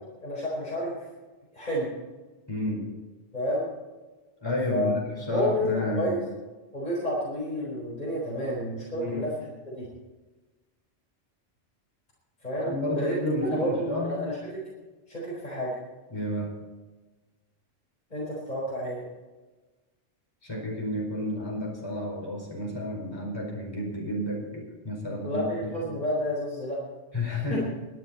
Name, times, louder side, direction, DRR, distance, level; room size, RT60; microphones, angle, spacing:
voice 1, 0.2-0.9 1.5-1.9 3.3-3.7 4.7-4.9 5.3-6.2 6.7-9.9 12.4-13.2 13.5-14.6 15.1-15.7 18.1-19.1 25.1-26.8 27.5-27.6, equal, 35° left, -6 dB, 4.6 m, -30 dB
voice 2, 2.5-2.9 4.4-6.2 8.9-9.2 12.6-14.2 16.1-16.5 20.4-25.9 27.1-27.6, left 1 dB, 20° left, -3 dB, 4.9 m, -31 dB
24.0 x 10.0 x 4.3 m, 1.2 s
omnidirectional pair, 1.3 m